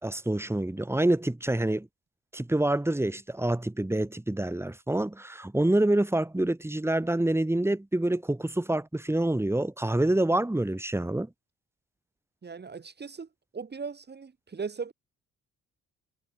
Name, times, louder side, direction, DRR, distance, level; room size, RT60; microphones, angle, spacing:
voice 1, 0.0-1.9 2.3-11.3, right 1 dB, 10° right, 4.4 m, -27 dB
voice 2, 12.4-13.3 13.5-14.9, right 5 dB, 35° right, 3.4 m, -38 dB
cardioid pair, 90°, 30 cm